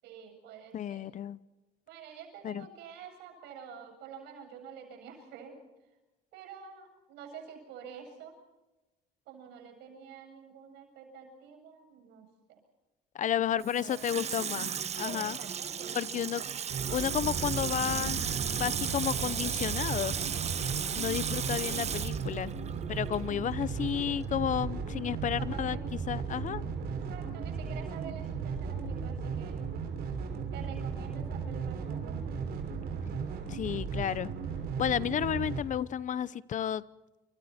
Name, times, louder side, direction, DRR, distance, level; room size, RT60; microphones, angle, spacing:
voice 1, 0.0-1.1 1.9-5.6 6.3-8.4 9.3-12.6 13.5-14.3 15.0-16.6 25.4-25.8 27.1-29.6 30.5-32.4, right 7 dB, 90° right, 3 dB, 7.7 m, -48 dB
voice 2, 0.7-1.4 2.4-2.7 13.1-15.4 15.9-16.4 16.9-18.2 18.6-20.2 21.0-22.5 22.9-25.8 26.1-26.6 33.5-34.3 34.8-36.8, left 9 dB, 50° left, 18 dB, 0.9 m, -32 dB
Water tap faucet / Sink (filling or washing), 13.6-23.3 23.6-23.7, right 7 dB, 40° right, 1.2 m, -35 dB
sound 1, 16.7-35.6, right 5 dB, 70° right, 6.1 m, -36 dB
29.0 x 25.5 x 4.4 m, 1.1 s
cardioid pair, 110°, 17 cm